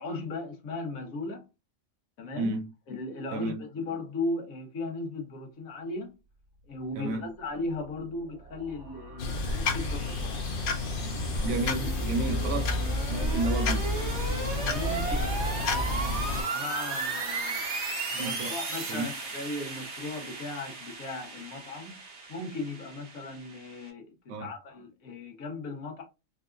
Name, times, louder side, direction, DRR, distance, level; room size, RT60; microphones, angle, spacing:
voice 1, 0.0-1.4 2.2-2.5 2.9-6.1 6.6-10.4 14.6-17.6 18.1-22.0 22.3-26.0, left 2 dB, 90° left, 1.4 m, -37 dB
voice 2, 2.4-2.7 3.3-3.6 6.9-7.3 11.4-12.8 13.1-13.8 18.2-18.6 18.9-19.1 24.3-24.5, right 2 dB, 85° right, 1.1 m, -32 dB
sound 1, 7.9-23.9, right 3 dB, 60° right, 1.2 m, -36 dB
sound 2, 9.2-16.4, left 2 dB, 60° left, 0.6 m, -30 dB
4.0 x 2.4 x 2.3 m
omnidirectional pair, 1.4 m